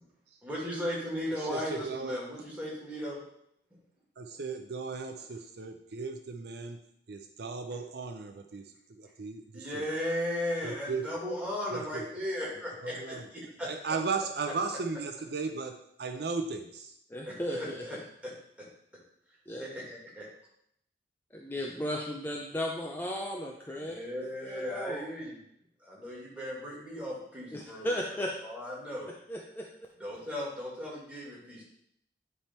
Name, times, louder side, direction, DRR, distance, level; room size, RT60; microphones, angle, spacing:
voice 1, 0.4-3.2 3.7-3.8 9.5-13.7 17.3-18.0 18.2-18.3 19.6-20.3 23.7-25.4 25.8-27.9 28.4-29.1 30.0-31.6, left 1 dB, 5° right, -5 dB, 2.2 m, -36 dB
voice 2, 1.4-2.2 4.2-6.8 7.1-8.6 8.9-9.9 10.6-11.0 11.7-12.1 12.8-13.3 13.6-16.9, right 4 dB, 60° right, 5 dB, 0.6 m, -36 dB
voice 3, 17.1-17.8 19.5-19.6 21.3-25.0 27.5-28.3 29.3-29.7, equal, 10° left, -1 dB, 0.5 m, -35 dB
10.0 x 3.5 x 4.4 m, 0.74 s
head